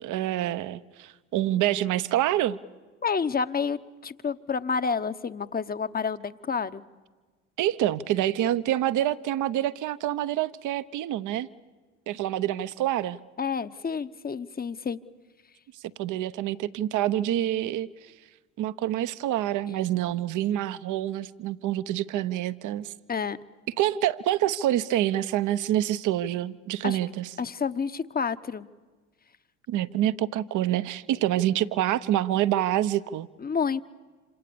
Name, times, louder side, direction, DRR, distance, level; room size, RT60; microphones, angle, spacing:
voice 1, 0.0-2.6 7.6-11.5 12.1-13.2 16.0-17.9 18.6-22.9 23.8-27.3 29.7-33.3, right 13 dB, 55° right, 14 dB, 1.0 m, -27 dB
voice 2, 3.0-6.8 13.4-15.0 23.1-23.4 26.8-27.0 27.4-28.7 33.4-33.8, left 5 dB, 25° left, 11 dB, 1.0 m, -29 dB
27.5 x 27.0 x 7.0 m, 1.3 s
hypercardioid pair, 65°, 36 cm